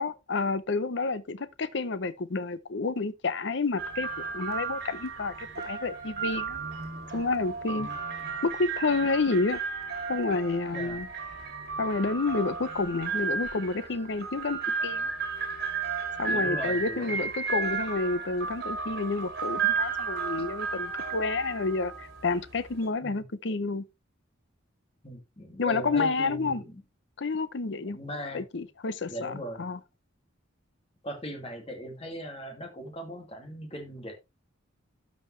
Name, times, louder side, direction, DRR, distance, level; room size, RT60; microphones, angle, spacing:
voice 1, 0.0-6.6 7.1-7.9 8.4-9.6 10.1-11.1 11.8-15.1 16.2-23.9 25.6-26.6 27.2-28.0 28.3-29.8, left 3 dB, 60° left, 0.7 m, -29 dB
sound 1, 3.8-22.9, right 5 dB, 55° right, 2.6 m, -33 dB
voice 2, 16.3-17.7 23.0-23.1 25.0-26.8 27.8-28.4 29.1-29.6 31.0-34.1, equal, 30° left, 2.3 m, -39 dB
12.0 x 5.3 x 3.2 m
head